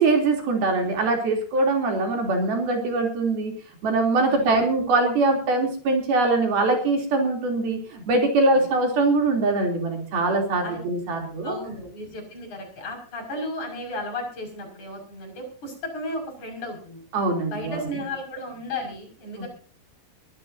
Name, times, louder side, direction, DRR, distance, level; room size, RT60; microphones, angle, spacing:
voice 1, 0.0-3.6 3.8-11.6 17.1-18.0 19.4-19.5, right 3 dB, 65° right, 2 dB, 5.1 m, -22 dB
voice 2, 4.2-4.7 8.5-8.6 10.6-10.8 11.4-17.0 17.5-19.5, left 1 dB, 45° left, 2 dB, 7.3 m, -34 dB
23.0 x 15.0 x 2.8 m, 0.42 s
omnidirectional pair, 4.7 m